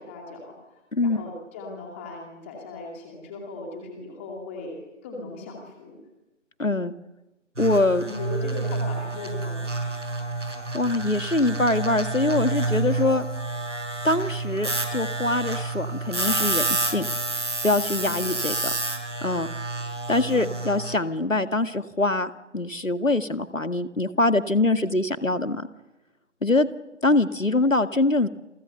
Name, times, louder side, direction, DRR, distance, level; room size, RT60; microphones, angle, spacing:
voice 1, 0.0-6.0 8.0-9.6 18.0-18.4 20.2-20.6, left 2 dB, 10° left, 1 dB, 2.6 m, -38 dB
voice 2, 0.9-1.3 6.6-6.9 7.6-8.0 10.7-13.3 14.0-17.1 17.6-18.7 19.2-19.5 20.1-25.7 26.4-26.7 27.0-28.3, left 2 dB, 90° left, 10 dB, 2.0 m, -23 dB
sound 1, 7.6-21.0, right 2 dB, 70° right, 6.1 m, -29 dB
29.0 x 24.0 x 6.8 m, 1.0 s
figure-of-eight pair, 155°, 38 cm